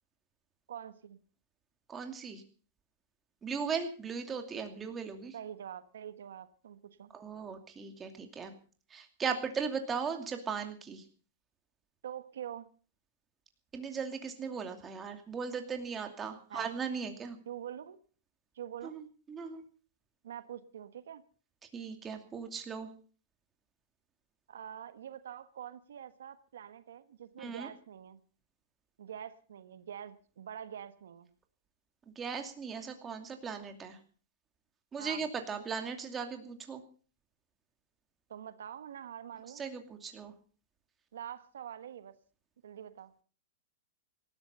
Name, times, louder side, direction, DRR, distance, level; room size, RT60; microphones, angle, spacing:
voice 1, 0.7-1.2 5.3-7.1 12.0-12.7 16.5-16.7 17.5-18.0 18.5-19.0 20.2-21.2 24.5-28.2 29.0-31.3 35.0-35.3 38.3-39.6 41.1-42.1 42.6-43.1, right 9 dB, 85° right, 11 dB, 1.3 m, -45 dB
voice 2, 1.9-2.4 3.4-5.3 7.1-8.6 8.9-11.0 13.7-17.4 18.8-19.6 21.7-22.9 27.4-27.7 32.2-34.0 34.9-36.8 39.6-40.3, right 6 dB, 15° right, 5 dB, 2.6 m, -38 dB
18.5 x 13.0 x 5.5 m, 0.42 s
hypercardioid pair, 145°, 0 cm